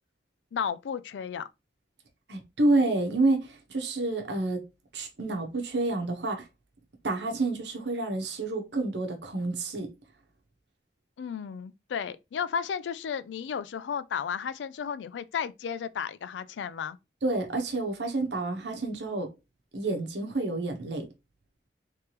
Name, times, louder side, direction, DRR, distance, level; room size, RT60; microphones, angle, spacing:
voice 1, 0.5-1.5 11.2-17.0, left 7 dB, 90° left, 0.3 m, -33 dB
voice 2, 2.3-4.6 4.9-6.4 7.0-9.9 17.2-19.3 19.7-21.0, right 2 dB, 80° right, 1.0 m, -29 dB
3.3 x 3.2 x 2.9 m
head